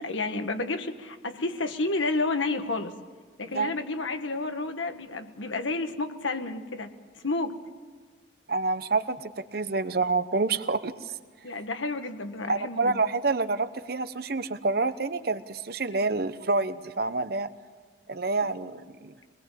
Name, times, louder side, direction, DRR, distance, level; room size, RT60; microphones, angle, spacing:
voice 1, 0.0-2.9 3.4-6.9 7.2-7.5 11.4-13.0 18.6-18.7, left 3 dB, 90° left, 7 dB, 1.7 m, -30 dB
voice 2, 8.5-11.1 12.5-17.5 18.1-19.1, right 3 dB, 55° right, 12 dB, 0.9 m, -28 dB
24.0 x 20.5 x 7.5 m, 1.5 s
head